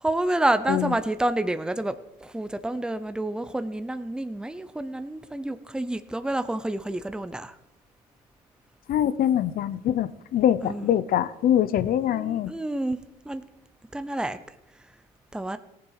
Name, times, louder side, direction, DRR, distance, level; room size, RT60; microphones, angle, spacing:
voice 1, 0.0-1.9 2.2-7.6 10.6-10.9 12.1-13.0 13.3-13.4 13.9-14.4 15.3-15.6, right 1 dB, 5° right, 10 dB, 0.7 m, -28 dB
voice 2, 8.9-12.5, left 10 dB, 60° left, 15 dB, 0.8 m, -24 dB
18.0 x 7.4 x 4.9 m, 0.83 s
cardioid pair, 110°, 17 cm